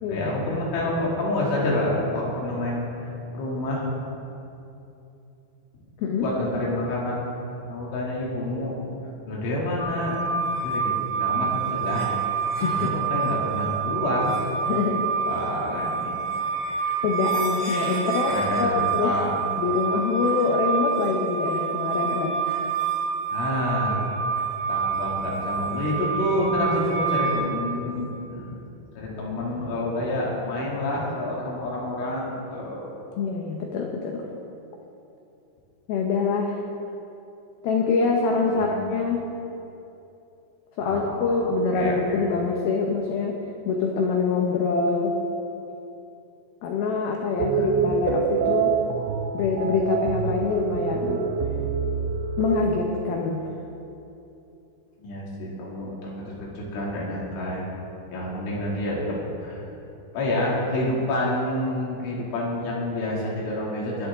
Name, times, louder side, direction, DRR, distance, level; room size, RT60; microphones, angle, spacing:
voice 1, 0.1-3.9 6.2-7.2 7.7-8.7 9.3-12.1 12.6-14.4 15.2-16.2 18.2-19.3 23.3-24.0 24.7-28.5 29.0-32.9 38.5-38.8 40.8-42.2 47.3-47.7 55.0-57.6 58.1-59.6 60.1-64.1, left 1 dB, 75° left, -4 dB, 4.9 m, -28 dB
voice 2, 6.0-6.3 12.6-12.9 14.7-15.1 17.0-19.2 19.6-22.4 33.2-34.3 35.9-36.6 37.6-39.3 40.8-43.4 43.7-45.2 46.6-48.8 49.3-51.3 52.4-53.4, left 4 dB, 90° left, 1 dB, 2.1 m, -25 dB
sound 1, 9.8-27.3, right 6 dB, 10° right, 2.8 m, -27 dB
sound 2, 47.4-52.7, right 7 dB, 85° right, 3.2 m, -26 dB
20.5 x 11.5 x 3.6 m, 2.8 s
omnidirectional pair, 5.7 m